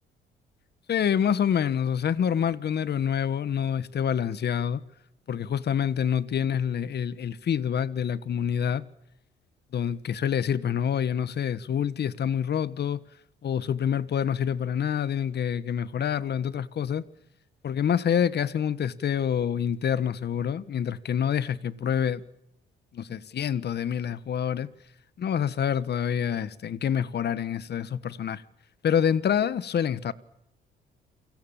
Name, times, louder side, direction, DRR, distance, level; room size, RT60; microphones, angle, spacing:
voice 1, 0.9-4.8 5.3-8.8 9.7-13.0 13.4-17.0 17.6-22.2 22.9-24.7 25.2-28.4 28.8-30.1, left 8 dB, 55° left, 1.5 m, -27 dB
28.5 x 25.0 x 7.4 m
cardioid pair, 90°, 20 cm